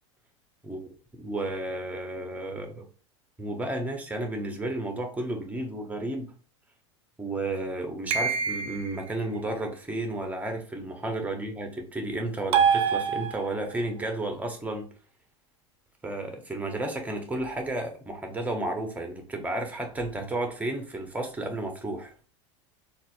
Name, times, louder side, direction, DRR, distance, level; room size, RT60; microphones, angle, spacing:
voice 1, 1.2-2.8 3.4-6.3 7.2-14.9 16.0-22.1, right 2 dB, 10° right, 3 dB, 0.9 m, -32 dB
sound 1, 8.1-9.0 12.5-13.7, right 7 dB, 40° right, 0.5 m, -25 dB
3.9 x 2.5 x 2.2 m, 0.38 s
hypercardioid pair, 95°, 15 cm